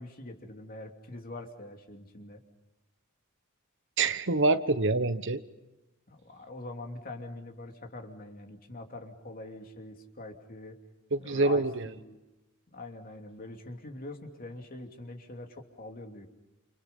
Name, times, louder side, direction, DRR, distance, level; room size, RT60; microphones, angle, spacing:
voice 1, 0.0-2.4 6.1-10.8 11.2-12.2 12.7-16.3, left 2 dB, 45° left, 3 dB, 2.9 m, -44 dB
voice 2, 4.0-5.4 11.1-11.8, right 3 dB, 60° right, 11 dB, 1.1 m, -26 dB
29.5 x 28.5 x 5.5 m, 1.0 s
head